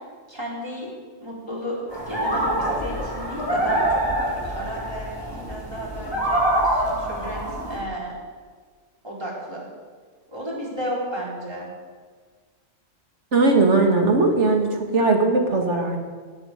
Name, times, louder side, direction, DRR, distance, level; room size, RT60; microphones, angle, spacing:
voice 1, 0.3-0.9 1.2-3.8 4.2-5.1 5.5-7.4 7.7-8.2 9.0-9.7 10.3-11.7, equal, 20° right, -4 dB, 4.5 m, -33 dB
sound 1, 1.9-7.8, right 1 dB, 20° left, 4.9 m, -25 dB
voice 2, 13.3-16.0, right 3 dB, 60° right, 3 dB, 2.5 m, -19 dB
18.5 x 8.4 x 8.2 m, 1.5 s
omnidirectional pair, 1.4 m